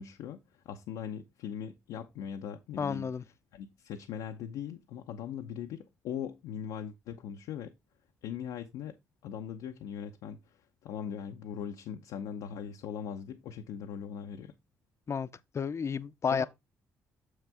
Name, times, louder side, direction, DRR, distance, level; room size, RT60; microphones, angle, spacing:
voice 1, 0.0-3.1 3.5-7.7 8.2-8.9 9.2-14.5 16.3-16.4, left 8 dB, 80° left, 0.7 m, -40 dB
voice 2, 2.8-3.2 15.1-15.3 15.5-16.4, left 6 dB, 45° left, 0.6 m, -31 dB
6.6 x 6.4 x 3.5 m
supercardioid pair, 60°, 7 cm